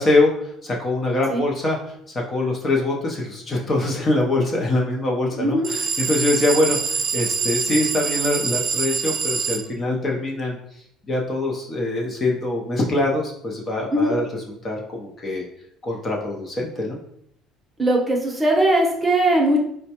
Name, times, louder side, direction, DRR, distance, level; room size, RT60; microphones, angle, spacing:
voice 1, 0.0-10.6 11.1-15.4 15.8-17.0, left 2 dB, 30° left, -1 dB, 0.6 m, -23 dB
voice 2, 5.3-5.7 13.9-14.1 17.8-19.6, right 1 dB, 10° right, -2 dB, 0.8 m, -19 dB
sound 1, 5.6-9.6, right 5 dB, 40° right, 0.6 m, -25 dB
4.2 x 2.1 x 2.8 m, 0.72 s
cardioid pair, 120°, 0 cm